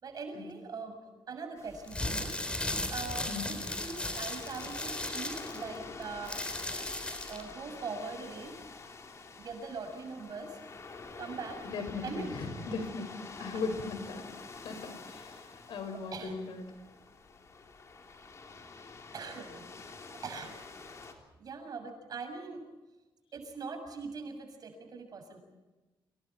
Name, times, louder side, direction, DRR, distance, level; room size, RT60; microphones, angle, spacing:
voice 1, 0.0-6.4 7.3-8.6 9.4-10.6 11.2-11.7 12.0-12.3 15.9-16.4 18.8-18.9 19.1-19.6 19.9-20.6 21.4-22.6 23.3-25.4, right 4 dB, 50° right, 6 dB, 6.6 m, -42 dB
sound 1, 1.6-21.1, left 4 dB, 35° left, 3.4 m, -48 dB
sound 2, 1.8-7.5, left 1 dB, 10° left, 3.6 m, -36 dB
voice 2, 11.7-14.3 14.6-16.6, left 4 dB, 70° left, 7 dB, 5.8 m, -38 dB
30.0 x 27.5 x 4.5 m, 1.1 s
wide cardioid pair, 170°, 9 cm